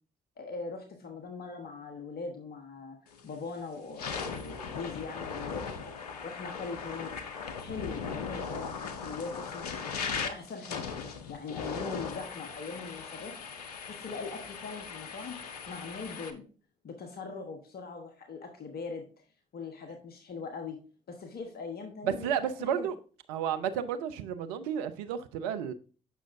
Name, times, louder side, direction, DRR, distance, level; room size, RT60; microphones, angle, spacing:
voice 1, 0.4-3.0 3.2-5.9 6.2-7.1 7.6-10.9 11.3-13.3 13.8-15.4 15.7-16.5 16.8-19.0 19.5-20.8 21.1-22.9, left 4 dB, 55° left, 1.2 m, -41 dB
sound 1, 3.1-3.4 3.8-16.3, left 5 dB, 90° left, 0.6 m, -39 dB
voice 2, 22.0-23.0 23.3-25.7, right 8 dB, 80° right, 0.6 m, -32 dB
8.1 x 6.1 x 2.6 m
hypercardioid pair, 40°, 19 cm